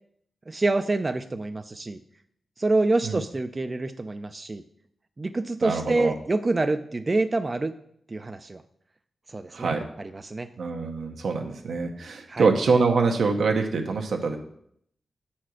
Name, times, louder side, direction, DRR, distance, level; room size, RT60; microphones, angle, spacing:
voice 1, 0.5-2.0 2.6-4.6 5.2-7.7 8.1-8.6 9.3-10.5 12.3-12.5, right 2 dB, 30° right, 9 dB, 0.4 m, -27 dB
voice 2, 5.6-6.1 9.5-9.8 10.6-14.4, right 4 dB, 85° right, 2 dB, 0.9 m, -24 dB
7.9 x 4.3 x 6.3 m, 0.69 s
wide cardioid pair, 115°, 0 cm